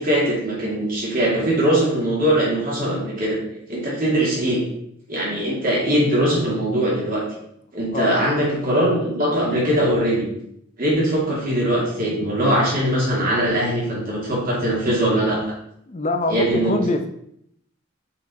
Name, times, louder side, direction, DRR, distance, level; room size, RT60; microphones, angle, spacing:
voice 1, 0.0-3.4 3.7-4.6 5.1-7.2 7.7-10.2 10.8-15.4 16.3-16.7, right 1 dB, 40° right, -5 dB, 2.4 m, -21 dB
voice 2, 7.9-8.3 15.9-17.1, left 2 dB, 35° left, 6 dB, 0.6 m, -24 dB
5.8 x 4.9 x 4.2 m, 0.73 s
head